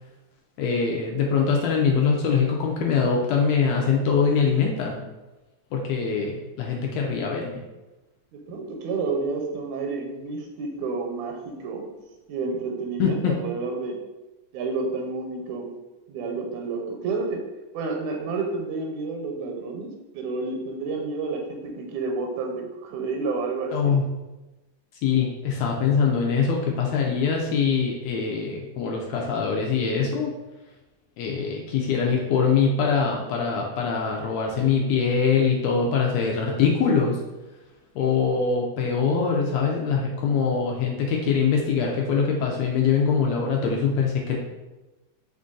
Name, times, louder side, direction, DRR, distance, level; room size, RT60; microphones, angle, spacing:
voice 1, 0.6-5.0 5.7-7.6 13.0-13.3 23.7-24.1 25.0-30.3 31.2-37.2 37.9-44.4, left 6 dB, 80° left, -1 dB, 1.6 m, -23 dB
voice 2, 8.5-11.9 12.3-14.0 14.5-15.7 16.1-17.4 17.7-19.9 20.1-23.9 38.0-38.3, right 4 dB, 85° right, 1 dB, 1.9 m, -30 dB
4.4 x 2.6 x 3.6 m, 1.1 s
omnidirectional pair, 3.3 m